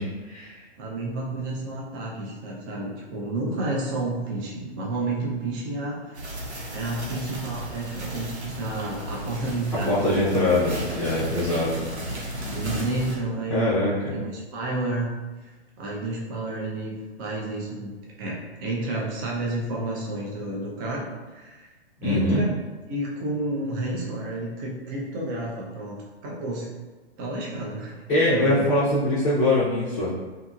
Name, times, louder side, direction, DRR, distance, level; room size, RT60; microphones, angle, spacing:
voice 1, 0.0-0.6 9.9-11.9 13.5-14.1 22.0-22.4 28.1-30.1, left 1 dB, 20° left, -9 dB, 0.6 m, -23 dB
voice 2, 0.8-10.3 12.5-13.8 14.1-15.1 15.4-15.5 15.8-21.7 22.0-22.5 22.9-26.7 27.2-28.0 28.3-28.7, right 2 dB, 20° right, -3 dB, 0.4 m, -31 dB
sound 1, 6.1-13.2, right 1 dB, 90° right, 0.8 m, -34 dB
2.7 x 2.7 x 2.3 m, 1.2 s
figure-of-eight pair, 125°, 33 cm